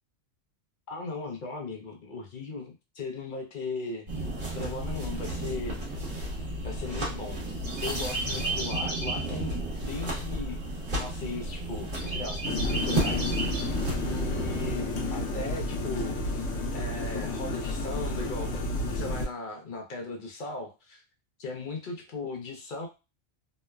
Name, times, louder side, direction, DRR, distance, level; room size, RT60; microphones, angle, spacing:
voice 1, 0.9-4.3 4.6-5.8 6.6-7.4 7.8-10.6 11.0-16.5 16.7-21.0 21.4-22.9, left 3 dB, 55° left, 2 dB, 0.7 m, -38 dB
sound 1, 4.1-14.7, right 1 dB, 50° right, 1.1 m, -32 dB
sound 2, 12.4-19.3, left 2 dB, 80° left, 0.9 m, -31 dB
3.0 x 2.1 x 2.2 m, 0.28 s
omnidirectional pair, 1.2 m